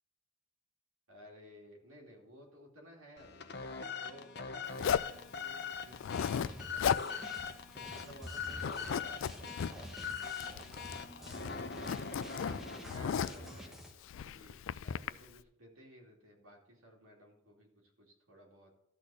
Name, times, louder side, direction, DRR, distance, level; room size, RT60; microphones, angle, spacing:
voice 1, 1.1-3.4 4.0-7.2 7.9-12.4 12.7-13.8 14.2-18.7, equal, 80° right, -1 dB, 2.5 m, -57 dB
sound 1, 3.2-13.7, left 6 dB, 50° left, 0.8 m, -42 dB
Zipper (clothing), 4.8-5.2 5.9-6.5 6.8-7.1 7.4-7.5 7.9-8.3 8.6-9.7 10.4-11.0 11.3-13.5 14.1-15.1, left 7 dB, 65° left, 0.3 m, -35 dB
sound 2, 6.1-13.9, equal, ahead, 1.0 m, -50 dB
12.5 x 4.2 x 6.9 m, 0.78 s
head